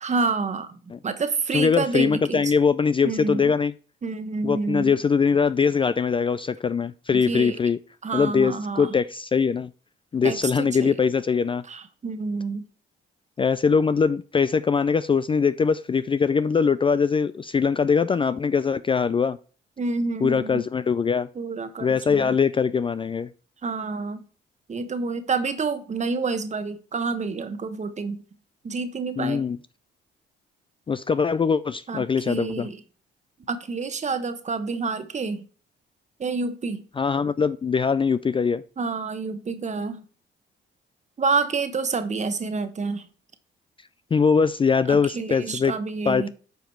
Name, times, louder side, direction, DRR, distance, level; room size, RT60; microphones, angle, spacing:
voice 1, 0.0-2.5 3.0-3.5 4.0-4.9 7.1-7.6 8.0-9.0 10.2-11.0 11.7-12.7 19.8-20.7 21.3-22.4 23.6-24.2 24.7-28.2 28.6-29.4 31.9-32.8 33.5-35.5 36.2-36.8 38.8-40.0 41.2-43.1 44.9-46.3, right 4 dB, 35° right, 1.2 m, -28 dB
voice 2, 1.5-3.7 4.4-7.8 8.1-9.7 10.1-11.6 13.4-19.4 20.2-21.3 21.8-23.3 29.2-29.6 30.9-32.7 37.0-38.6 44.1-45.7 46.1-46.3, left 5 dB, 25° left, 0.4 m, -22 dB
9.4 x 5.0 x 4.5 m
cardioid pair, 90°, 20 cm